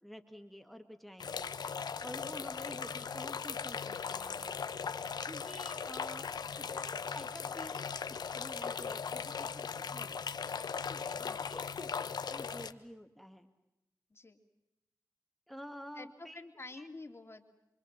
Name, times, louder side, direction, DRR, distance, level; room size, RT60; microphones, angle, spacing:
voice 1, 0.0-1.5 2.0-4.5 5.3-10.1 10.7-13.5 15.5-16.4 16.7-16.9, equal, ahead, 7 dB, 2.0 m, -50 dB
sound 1, 1.2-12.7, left 6 dB, 85° left, 1.1 m, -39 dB
voice 2, 11.1-11.6 14.1-14.4 15.9-17.5, left 3 dB, 40° left, 4 dB, 3.1 m, -49 dB
27.0 x 24.5 x 7.5 m, 0.90 s
cardioid pair, 60°, 7 cm